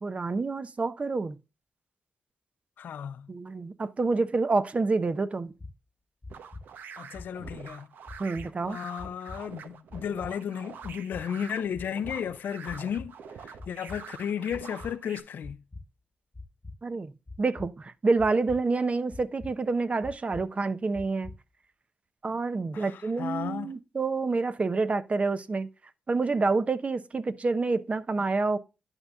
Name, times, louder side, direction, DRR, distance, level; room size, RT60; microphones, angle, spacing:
voice 1, 0.0-1.4 3.3-5.5 8.2-8.8 16.8-17.1 17.4-21.3 22.2-25.7 26.1-28.6, right 3 dB, 40° right, 0.7 m, -28 dB
voice 2, 2.8-3.3 7.0-7.9 8.7-13.2 13.4-15.6 22.7-23.7, left 8 dB, 75° left, 0.5 m, -34 dB
sound 1, 5.6-5.7 6.2-6.6 7.1-7.6 8.1-8.5 9.0-9.4 9.9-10.3 10.8-11.2 11.7-12.2 12.7-13.1 13.6-14.0 14.5-14.9 15.4-15.8 16.3-16.8 17.3-17.7 18.2-18.6 19.1-19.5 20.0-20.4 20.9-21.4, left 3 dB, 30° left, 1.1 m, -43 dB
sound 2, 6.3-15.2, right 6 dB, 80° right, 0.7 m, -46 dB
11.0 x 5.5 x 2.3 m
supercardioid pair, 45°, 3 cm